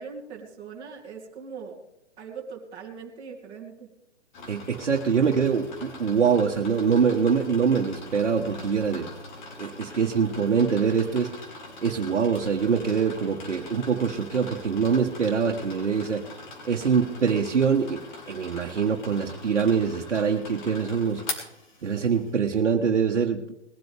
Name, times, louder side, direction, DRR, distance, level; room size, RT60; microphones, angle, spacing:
voice 1, 0.0-1.8 2.2-3.9, right 5 dB, 15° right, -6 dB, 2.2 m, -40 dB
sound 1, 4.3-22.3, left 2 dB, 40° left, 3.3 m, -42 dB
voice 2, 4.5-9.1 9.6-11.3 11.8-16.2 16.6-18.0 18.3-21.2 21.8-23.4, right 6 dB, 70° right, 0 dB, 1.4 m, -24 dB
20.5 x 12.0 x 3.5 m, 0.85 s
figure-of-eight pair, 130°, 36 cm